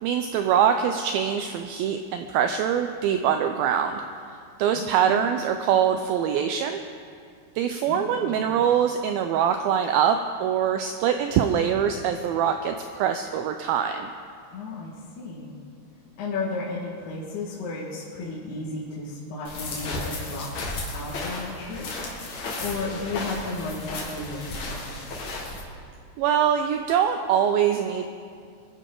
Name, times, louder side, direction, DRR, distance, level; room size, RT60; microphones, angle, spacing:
voice 1, 0.0-4.0 4.6-6.8 7.6-14.1 26.2-28.1, right 8 dB, 85° right, 7 dB, 2.1 m, -23 dB
voice 2, 4.7-5.3 7.9-8.5 14.5-15.6 16.2-21.9 22.6-25.1, left 3 dB, 70° left, -6 dB, 3.7 m, -34 dB
sound 1, 19.4-25.6, left 2 dB, 50° left, 2.5 m, -34 dB
24.5 x 10.0 x 3.8 m, 2.3 s
omnidirectional pair, 4.8 m